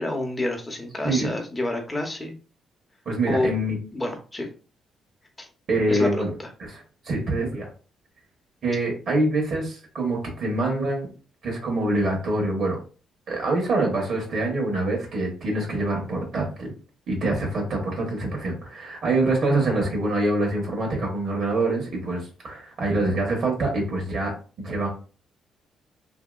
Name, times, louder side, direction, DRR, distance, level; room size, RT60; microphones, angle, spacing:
voice 1, 0.0-2.3 3.3-3.5 3.9-4.5 5.4-5.5 5.9-6.5, left 1 dB, 15° left, 3 dB, 0.8 m, -28 dB
voice 2, 3.0-3.8 5.7-6.3 6.6-7.6 8.6-11.1 11.4-12.8 13.3-16.7 17.1-24.3 24.6-24.9, right 2 dB, 65° right, 1 dB, 1.1 m, -25 dB
2.8 x 2.8 x 2.4 m, 0.36 s
cardioid pair, 90°, 0 cm